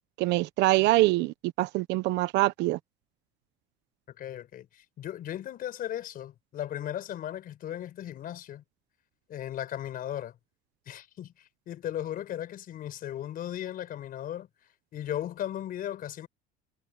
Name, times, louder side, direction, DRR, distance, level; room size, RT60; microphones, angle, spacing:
voice 1, 0.2-2.8, right 18 dB, 70° right, 1.0 m, -24 dB
voice 2, 4.1-8.6 9.3-10.4 10.9-14.5 14.9-16.3, left 11 dB, 50° left, 4.7 m, -36 dB
supercardioid pair, 110°, 19 cm